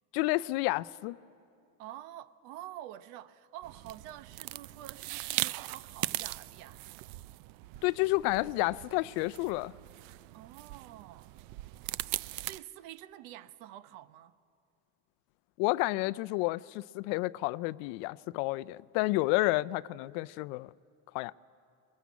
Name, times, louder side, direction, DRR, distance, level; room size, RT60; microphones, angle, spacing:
voice 1, 0.1-1.2 7.8-9.7 15.6-20.7 21.1-21.3, left 21 dB, 75° left, 0.5 m, -30 dB
voice 2, 1.8-7.1 10.3-11.4 12.1-14.3, right 13 dB, 80° right, 0.9 m, -48 dB
sound 1, 3.6-12.6, right 18 dB, 65° right, 0.5 m, -40 dB
22.0 x 20.5 x 8.3 m
cardioid pair, 125°, 40 cm